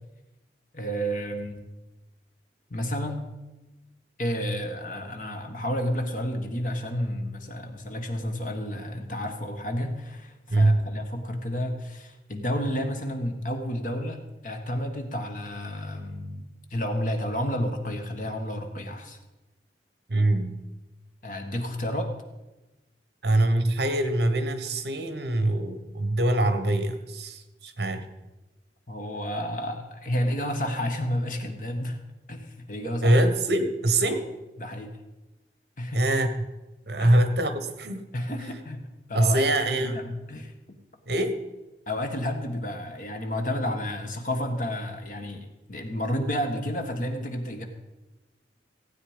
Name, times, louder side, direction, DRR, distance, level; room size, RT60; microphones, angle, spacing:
voice 1, 0.7-1.6 2.7-3.3 4.2-19.2 21.2-22.1 28.9-32.0 32.3-33.2 34.1-34.2 34.6-34.9 35.8-36.0 37.0-37.2 38.1-38.8 39.1-40.8 41.9-47.6, equal, 45° left, 5 dB, 1.5 m, -31 dB
voice 2, 10.5-10.9 20.1-20.6 23.2-28.0 33.0-34.2 35.9-36.3 36.9-38.1 39.1-40.0 41.1-41.4, right 1 dB, 65° right, 10 dB, 1.2 m, -24 dB
16.0 x 8.8 x 5.1 m, 1.1 s
head